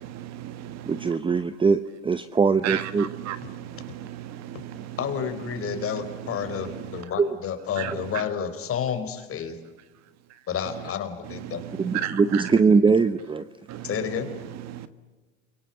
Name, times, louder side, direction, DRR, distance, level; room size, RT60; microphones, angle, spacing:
voice 1, 0.0-1.1 2.6-5.0 5.4-7.1 7.8-8.2 10.3-10.4 10.7-10.9 11.2-12.6 13.7-14.9, right 12 dB, 45° right, 1.6 m, -35 dB
voice 2, 0.9-3.1 7.2-7.4 11.8-13.4, right 5 dB, 15° right, 0.8 m, -21 dB
voice 3, 5.0-9.6 10.5-11.6 13.8-14.3, left 8 dB, 35° left, 4.5 m, -30 dB
29.0 x 24.0 x 8.0 m
hypercardioid pair, 105°, 37 cm